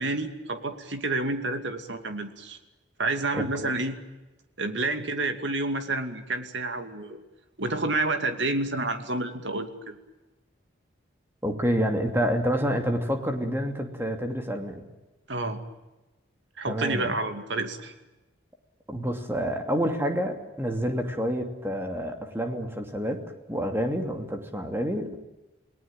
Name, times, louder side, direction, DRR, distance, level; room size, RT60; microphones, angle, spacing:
voice 1, 0.0-2.6 3.0-4.0 4.6-7.2 7.6-10.0 15.3-15.6 16.6-17.9, right 2 dB, 70° right, 7 dB, 2.6 m, -29 dB
voice 2, 3.4-3.7 11.4-14.8 16.7-17.1 18.9-23.2 23.5-25.2, equal, 10° right, 4 dB, 2.7 m, -28 dB
29.0 x 19.0 x 9.0 m, 1.1 s
head